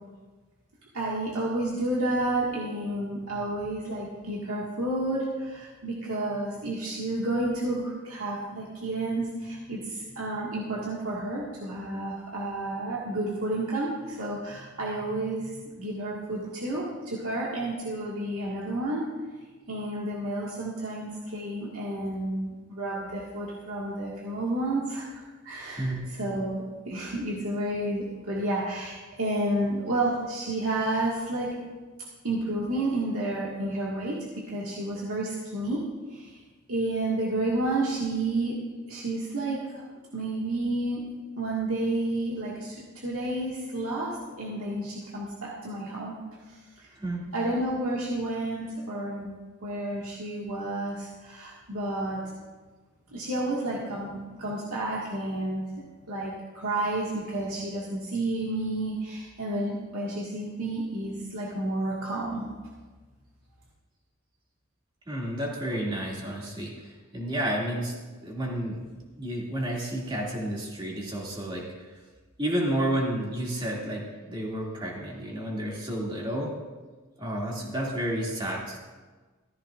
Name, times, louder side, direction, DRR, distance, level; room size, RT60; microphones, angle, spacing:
voice 1, 0.9-19.1 19.7-31.6 32.2-34.2 34.5-35.8 36.1-36.4 36.7-38.6 38.9-39.8 40.1-41.0 41.4-46.2 46.5-46.9 47.3-49.3 49.6-52.2 53.1-55.6 56.1-62.4, right 1 dB, 80° right, -5 dB, 1.8 m, -31 dB
voice 2, 25.6-26.1 47.0-47.2 65.1-68.8 69.2-71.6 72.4-76.5 77.2-78.8, right 1 dB, 20° right, -3 dB, 2.4 m, -31 dB
15.0 x 13.5 x 2.5 m, 1.3 s
head